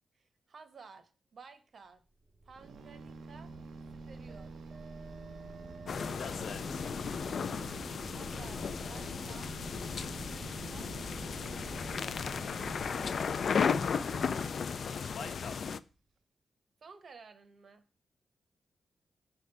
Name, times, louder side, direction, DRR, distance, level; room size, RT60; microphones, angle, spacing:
voice 1, 0.2-2.0 2.4-3.5 4.0-4.5 8.1-9.5 9.9-10.9 11.6-12.2 15.2-15.3 16.8-17.8, right 5 dB, 55° right, 10 dB, 0.9 m, -54 dB
sound 1, 2.2-15.9, right 2 dB, 25° right, 0.7 m, -51 dB
sound 2, 2.6-15.4, right 4 dB, 80° right, 0.6 m, -49 dB
sound 3, 5.9-15.8, left 6 dB, 60° left, 0.3 m, -35 dB
voice 2, 6.1-7.0 15.1-15.7, left 6 dB, 85° left, 5 dB, 0.9 m, -45 dB
6.3 x 3.6 x 5.4 m, 0.34 s
wide cardioid pair, 110°, 0 cm